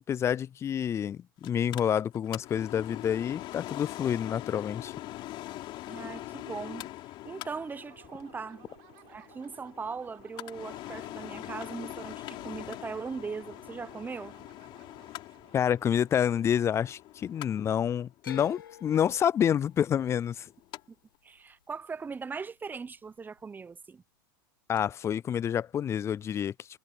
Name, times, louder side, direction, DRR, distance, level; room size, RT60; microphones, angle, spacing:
voice 1, 0.0-4.9 15.5-20.5 24.7-26.5, left 9 dB, 25° left, 0.4 m, -28 dB
Mechanical fan, 1.4-20.8 21.1-21.2, left 16 dB, 50° left, 3.9 m, -43 dB
voice 2, 5.8-6.9 7.2-8.6 9.1-14.3 20.9-21.0 21.2-24.0, right 5 dB, 15° right, 0.8 m, -39 dB
sound 1, 7.7-17.3, right 31 dB, 60° right, 4.2 m, -59 dB
sound 2, 18.2-22.4 22.7-23.4 24.7-24.8, left 10 dB, 90° left, 2.1 m, -49 dB
hypercardioid pair, 100°, 11 cm